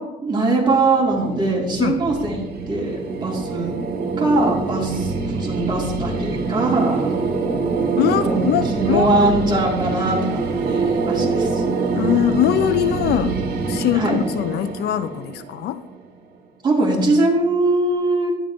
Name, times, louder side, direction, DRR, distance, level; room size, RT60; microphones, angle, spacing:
voice 1, 0.2-2.4 2.7-3.7 4.2-7.1 8.2-8.4 8.7-11.6 13.9-14.2 16.6-18.3, right 2 dB, 25° right, -3 dB, 3.0 m, -21 dB
sound 1, 1.0-16.0, right 4 dB, 60° right, 2.4 m, -25 dB
voice 2, 8.0-9.4 11.2-11.3 12.0-13.4 13.7-15.8, left 11 dB, 70° left, 13 dB, 0.5 m, -22 dB
11.0 x 10.5 x 3.1 m, 1.0 s
cardioid pair, 110°, 17 cm